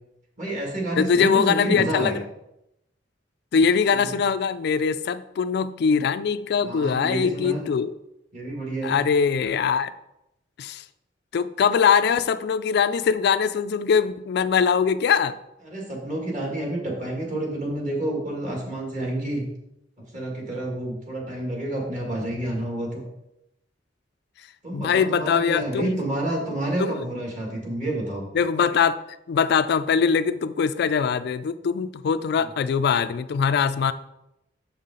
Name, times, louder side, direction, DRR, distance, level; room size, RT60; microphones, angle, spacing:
voice 1, 0.4-2.2 4.0-4.2 6.6-7.7 8.3-8.9 15.6-19.5 20.1-23.0 24.6-28.3 32.4-32.5, right 1 dB, 40° right, -1 dB, 2.2 m, -29 dB
voice 2, 1.0-2.2 3.5-7.9 8.8-9.9 10.6-10.8 11.3-15.3 24.7-26.0 26.8-27.0 28.3-29.0 29.3-33.9, left 6 dB, 60° left, 12 dB, 0.3 m, -22 dB
7.2 x 5.6 x 3.8 m, 0.85 s
head